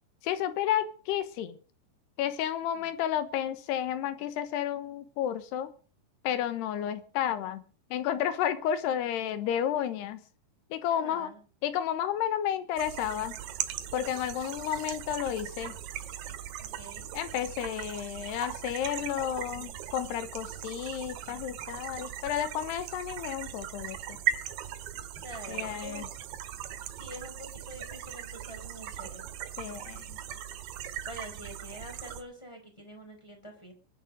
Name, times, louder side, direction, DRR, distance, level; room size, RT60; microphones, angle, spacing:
voice 1, 0.2-1.6 2.2-5.7 6.2-7.6 7.9-10.2 10.7-11.3 11.6-13.4 13.9-15.8 17.1-24.2 25.5-26.1 29.6-30.2, left 10 dB, 75° left, 12 dB, 3.1 m, -31 dB
voice 2, 10.9-11.4 16.6-17.1 25.1-26.1 26.9-29.3 31.1-33.7, equal, 5° left, 4 dB, 3.7 m, -46 dB
sound 1, 12.8-32.2, right 11 dB, 85° right, 3.6 m, -39 dB
21.5 x 10.5 x 5.2 m, 0.40 s
omnidirectional pair, 5.0 m